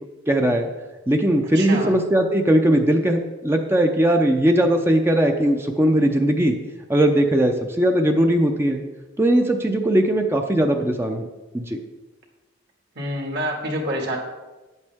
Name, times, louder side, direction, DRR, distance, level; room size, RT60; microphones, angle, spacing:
voice 1, 0.3-0.7 1.1-6.6 6.9-8.8 9.2-11.3 11.5-11.8, right 1 dB, 10° right, 4 dB, 0.5 m, -19 dB
voice 2, 1.5-1.9 13.0-14.2, right 1 dB, 60° right, 0 dB, 2.0 m, -27 dB
9.4 x 8.2 x 3.5 m, 1.1 s
head